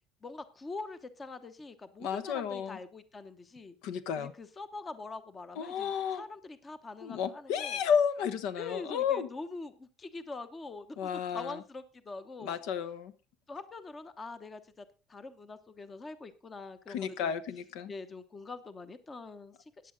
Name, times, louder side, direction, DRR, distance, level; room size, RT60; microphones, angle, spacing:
voice 1, 0.2-3.8 4.1-7.8 8.6-12.6 13.5-17.4 17.9-19.9, left 3 dB, 20° left, 12 dB, 0.9 m, -44 dB
voice 2, 2.0-2.8 3.8-4.3 5.6-6.2 7.0-9.3 11.0-11.5 12.4-13.1 16.9-17.9, left 7 dB, 70° left, 13 dB, 1.1 m, -32 dB
14.5 x 10.0 x 3.8 m, 0.32 s
cardioid pair, 160°, 0 cm